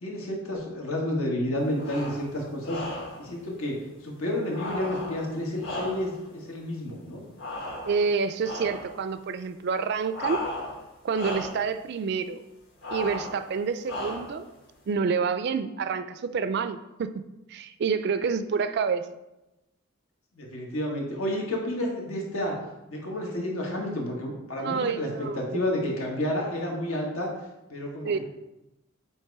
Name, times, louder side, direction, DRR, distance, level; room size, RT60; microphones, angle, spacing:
voice 1, 0.0-7.2 20.3-22.6 22.9-27.3 27.7-28.2, left 1 dB, 80° left, -1 dB, 1.6 m, -30 dB
sound 1, 1.7-2.3 2.6-3.3 4.5-6.3 7.4-8.1 8.4-8.9 10.1-10.9 11.1-11.7 12.8-13.4 13.8-14.4, left 1 dB, 60° left, 1.6 m, -35 dB
voice 2, 7.9-10.4 11.0-12.4 12.9-14.5 14.9-17.2 17.5-19.0 24.6-25.6 28.0-28.2, right 5 dB, 50° right, 11 dB, 0.3 m, -28 dB
7.7 x 2.9 x 4.7 m, 0.97 s
head